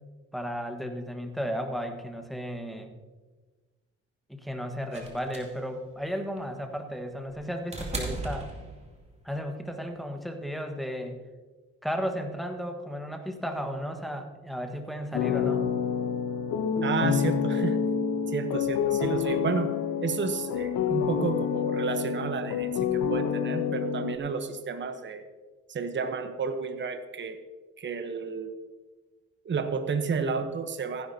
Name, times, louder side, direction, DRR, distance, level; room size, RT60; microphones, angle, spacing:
voice 1, 0.3-2.9 4.3-8.5 9.2-11.2 11.8-15.7, equal, ahead, 4 dB, 1.4 m, -34 dB
sound 1, 4.9-9.2 10.4-10.5, right 2 dB, 20° right, 2.4 m, -37 dB
sound 2, 15.1-24.2, left 7 dB, 80° left, 0.8 m, -28 dB
voice 2, 16.8-17.8 18.3-19.8 20.0-25.3 25.7-27.4 27.8-28.5 29.4-31.1, right 5 dB, 40° right, 8 dB, 1.1 m, -31 dB
15.5 x 10.5 x 2.8 m, 1.3 s
cardioid pair, 90°, 30 cm